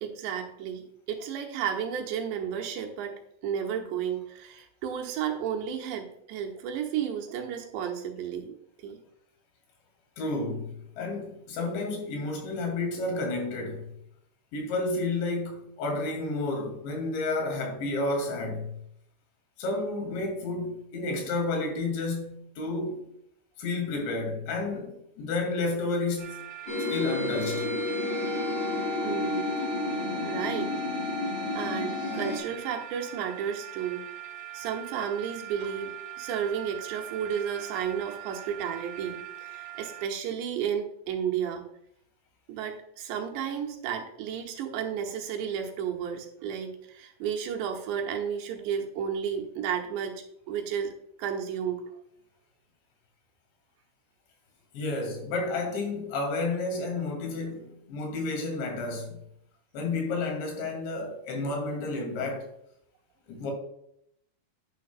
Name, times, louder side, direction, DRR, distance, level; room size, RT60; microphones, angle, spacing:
voice 1, 0.0-3.2 3.4-8.6 8.8-9.0 29.0-29.6 30.2-30.7 31.6-34.0 34.5-41.6 42.5-51.8, right 8 dB, 85° right, 3.4 m, -32 dB
voice 2, 10.2-13.9 14.5-18.7 19.6-23.1 23.6-26.5 26.9-27.7 54.7-59.2 59.7-62.5 63.3-63.5, left 2 dB, 85° left, 4.7 m, -31 dB
sound 1, 26.2-40.1, right 13 dB, 65° right, 2.6 m, -42 dB
sound 2, 26.7-32.4, left 2 dB, 40° left, 3.9 m, -30 dB
11.5 x 9.5 x 2.3 m
omnidirectional pair, 5.0 m